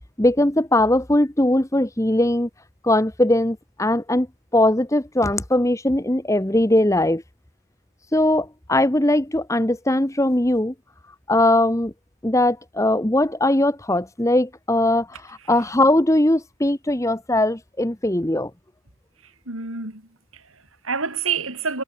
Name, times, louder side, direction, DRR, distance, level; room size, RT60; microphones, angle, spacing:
voice 1, 0.2-2.5 2.8-4.3 4.5-7.2 8.1-10.7 11.3-11.9 12.2-18.5, left 1 dB, 15° left, 1.1 m, -20 dB
voice 2, 19.2-21.8, right 5 dB, 75° right, 7.0 m, -29 dB
head